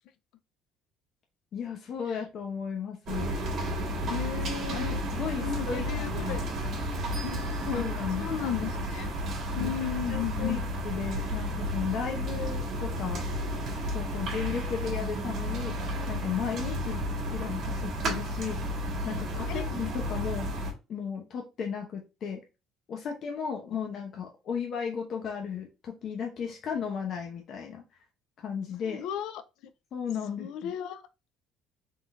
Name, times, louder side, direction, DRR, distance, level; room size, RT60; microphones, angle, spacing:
voice 1, 1.5-3.3 4.7-6.4 7.7-8.3 9.6-13.3 13.9-15.8 16.1-17.0 17.3-18.6 19.0-20.5 20.9-22.4 22.9-27.8 28.4-29.0 29.9-30.7, left 7 dB, 45° left, 0.7 m, -35 dB
sound 1, 3.1-20.7, equal, 45° right, 1.5 m, -32 dB
voice 2, 4.0-5.0 5.4-6.4 7.2-7.4 7.8-7.9 8.2-9.1 9.5-10.6 16.9-17.0 19.5-19.6 28.9-29.3 30.4-31.0, left 10 dB, 70° left, 0.5 m, -34 dB
3.8 x 3.8 x 2.5 m
cardioid pair, 150°, 0 cm